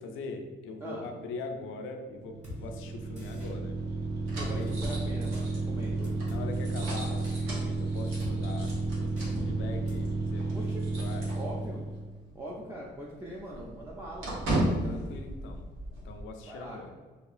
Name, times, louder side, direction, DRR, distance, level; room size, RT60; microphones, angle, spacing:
voice 1, 0.0-3.8 4.5-4.8 5.9-6.0 6.2-10.7 11.0-11.4 14.6-15.6 16.0-16.9, left 3 dB, 90° left, 5 dB, 0.4 m, -42 dB
sound 1, 2.1-12.0, right 3 dB, 55° right, 0.7 m, -32 dB
Drum kit, 2.4-2.6 3.2-3.5 4.4-4.5 5.3-5.4 6.0-6.4 7.2-7.4 8.2-8.3 8.7-8.8 9.2-9.3 9.9-10.0, left 3 dB, 35° right, 1.3 m, -43 dB
sound 2, 3.1-12.0 12.3-12.4 12.8-16.2, right 1 dB, 85° right, 0.9 m, -37 dB
voice 2, 4.4-6.1 10.5-10.9 11.3-11.8 12.3-14.4 16.4-16.9, right 1 dB, 10° right, -4 dB, 0.4 m, -41 dB
2.8 x 2.4 x 2.4 m, 1.4 s
cardioid pair, 90°, 20 cm